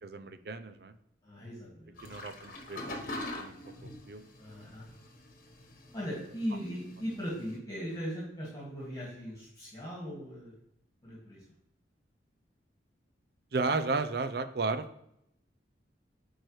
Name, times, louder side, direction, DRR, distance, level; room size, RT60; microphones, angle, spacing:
voice 1, 0.0-0.9 2.0-3.0 3.4-3.5 3.8-4.2 13.5-14.9, right 3 dB, 60° right, 11 dB, 0.5 m, -33 dB
voice 2, 1.2-2.0 4.4-4.9 5.9-10.5 11.0-11.4, equal, 20° left, -5 dB, 2.0 m, -39 dB
sound 1, 2.0-7.6, left 2 dB, 45° left, 1.2 m, -44 dB
8.9 x 4.7 x 3.2 m, 0.77 s
head